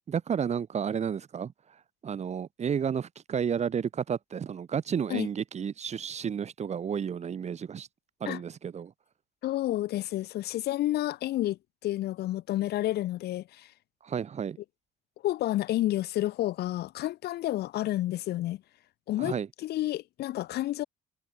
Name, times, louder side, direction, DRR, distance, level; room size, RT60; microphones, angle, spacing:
voice 1, 0.1-1.5 2.0-7.9 8.2-8.9 14.0-14.6 19.2-19.5, right 7 dB, 40° right, 3.4 m, -31 dB
voice 2, 9.4-13.7 15.2-18.6 19.1-20.8, left 15 dB, 75° left, 3.5 m, -30 dB
cardioid pair, 110°, 17 cm